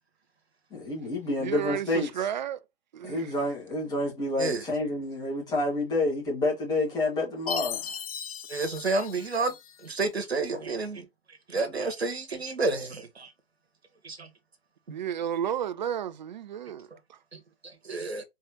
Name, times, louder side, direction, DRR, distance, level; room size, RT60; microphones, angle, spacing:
voice 1, 0.7-2.1 3.0-7.9, left 2 dB, 10° left, 1.8 m, -29 dB
voice 2, 1.4-2.6 2.9-3.3 14.9-17.2, right 9 dB, 45° right, 0.5 m, -32 dB
Chime, 7.5-9.9, left 8 dB, 35° left, 0.5 m, -37 dB
voice 3, 8.5-9.5 9.8-11.1 11.5-13.3 14.0-14.3 17.3-17.4 17.8-18.2, right 3 dB, 80° right, 1.4 m, -30 dB
4.4 x 3.2 x 2.9 m
figure-of-eight pair, 125°, 31 cm